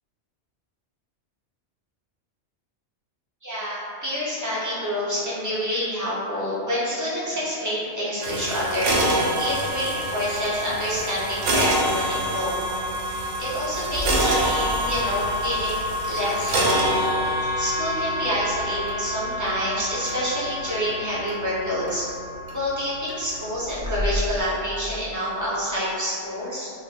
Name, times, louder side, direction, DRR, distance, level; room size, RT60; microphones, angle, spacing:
voice 1, 3.4-12.5 13.4-22.1 22.5-26.7, equal, 20° right, -9 dB, 0.6 m, -28 dB
sound 1, 8.2-24.4, equal, 75° right, 0.9 m, -27 dB
2.7 x 2.6 x 3.3 m, 2.4 s
omnidirectional pair, 1.2 m